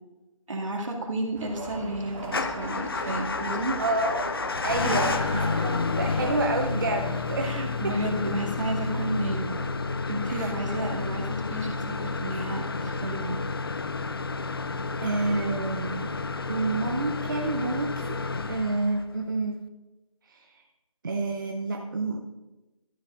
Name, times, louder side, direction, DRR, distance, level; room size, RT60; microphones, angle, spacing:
voice 1, 0.5-3.8 4.8-5.3 7.4-9.6 10.1-13.4, right 1 dB, 60° right, -1 dB, 2.3 m, -32 dB
sound 1, 1.3-7.2, right 2 dB, 15° right, 1.6 m, -38 dB
Motor vehicle (road) / Engine starting / Idling, 2.2-19.2, left 4 dB, 45° left, 0.5 m, -30 dB
voice 2, 3.8-4.3 4.6-7.5 7.8-7.9 8.2-8.4 10.3-10.5 10.8-10.9 15.0-16.1 16.5-18.2 18.5-19.5 20.3-20.4 21.0-22.2, right 2 dB, 35° right, 2 dB, 0.7 m, -29 dB
13.5 x 11.0 x 2.6 m, 1.0 s
figure-of-eight pair, 170°, 18 cm